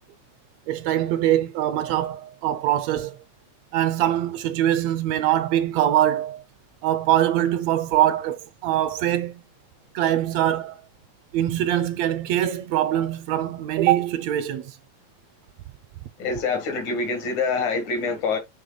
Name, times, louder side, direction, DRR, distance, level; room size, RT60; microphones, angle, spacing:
voice 1, 0.7-3.2 3.7-6.4 6.8-9.4 9.9-10.8 11.3-14.8, right 12 dB, 75° right, 1.7 m, -23 dB
voice 2, 16.2-18.4, left 4 dB, 80° left, 3.2 m, -25 dB
8.0 x 3.0 x 4.2 m
omnidirectional pair, 3.3 m